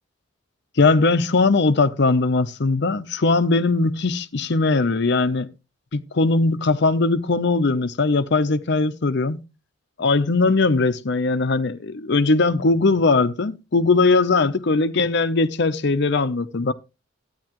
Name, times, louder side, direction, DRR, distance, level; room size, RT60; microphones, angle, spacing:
voice 1, 0.8-5.5 5.9-9.4 10.0-16.7, left 3 dB, 60° left, 0.7 m, -20 dB
14.0 x 9.7 x 3.0 m
head